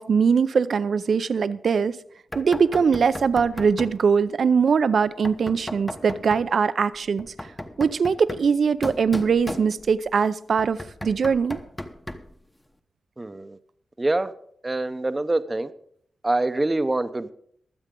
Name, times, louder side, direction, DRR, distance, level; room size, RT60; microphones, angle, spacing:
voice 1, 0.0-2.0 2.3-7.3 7.8-11.6, right 6 dB, 60° right, 15 dB, 0.5 m, -21 dB
Knock, 2.3-4.0 5.2-6.5 7.2-10.1 10.6-12.4, left 1 dB, 15° left, 0.9 m, -36 dB
voice 2, 13.2-13.6 14.0-14.3 14.6-15.7 16.2-17.3, right 2 dB, 20° right, 11 dB, 0.7 m, -25 dB
23.0 x 8.0 x 3.8 m, 0.65 s
wide cardioid pair, 125°, 0 cm